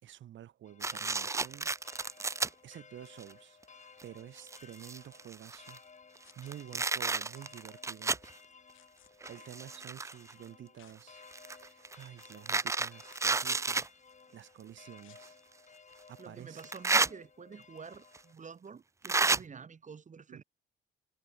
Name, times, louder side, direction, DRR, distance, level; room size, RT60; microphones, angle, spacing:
voice 1, 0.0-1.7 2.6-3.6 4.0-5.8 6.4-8.1 9.3-13.8 14.3-15.4 16.1-16.6 19.3-19.7 20.3-20.4, right 11 dB, 70° right, 4.2 m, -50 dB
sound 1, 0.6-18.3, left 5 dB, 35° left, 4.7 m, -57 dB
sound 2, 0.8-2.5 3.2-3.3 4.0-4.1 4.4-5.8 6.3-8.3 9.2-10.3 11.3-13.9 15.2-15.3 16.6-17.1 18.1-18.2 19.0-19.4, right 3 dB, 15° right, 0.4 m, -31 dB
sound 3, 6.2-6.5 8.7-9.1 10.7-11.0 11.6-11.7 13.1-13.5 15.0-15.2 16.8-17.0, left 14 dB, 80° left, 3.2 m, -62 dB
voice 2, 16.2-20.4, right 5 dB, 40° right, 3.0 m, -49 dB
cardioid pair, 90°, 20 cm